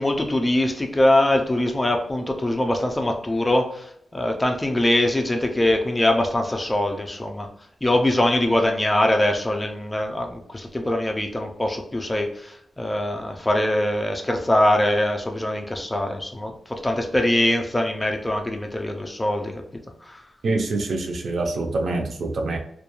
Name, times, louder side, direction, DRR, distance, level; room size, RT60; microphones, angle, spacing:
voice 1, 0.0-3.6 4.1-7.5 7.8-10.3 10.5-12.3 12.8-16.5 16.8-19.5, left 1 dB, 15° left, 2 dB, 0.3 m, -22 dB
voice 2, 20.4-22.6, right 2 dB, 65° right, 3 dB, 0.5 m, -25 dB
2.3 x 2.2 x 2.9 m, 0.71 s
wide cardioid pair, 145°, 0 cm